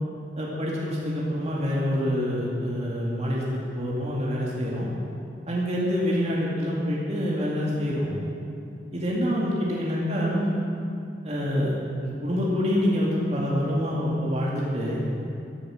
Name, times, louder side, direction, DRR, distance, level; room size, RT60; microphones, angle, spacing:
voice 1, 0.4-4.9 5.5-8.1 8.9-10.6 11.2-15.0, equal, 35° right, -5 dB, 2.4 m, -26 dB
14.0 x 12.5 x 6.4 m, 2.6 s
head